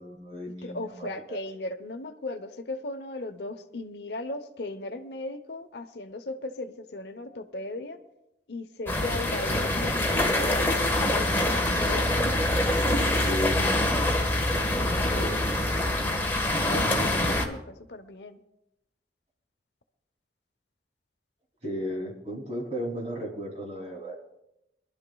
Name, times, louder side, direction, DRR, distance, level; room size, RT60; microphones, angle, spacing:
voice 1, 0.0-1.4 13.2-14.3 14.6-15.3 21.6-24.2, equal, 35° right, -1 dB, 3.0 m, -35 dB
voice 2, 0.6-8.0 8.5-12.1 16.3-18.4, left 2 dB, 70° left, 8 dB, 0.8 m, -37 dB
sound 1, 8.9-17.5, left 1 dB, 15° left, 1.3 m, -25 dB
25.0 x 12.0 x 2.3 m, 0.85 s
head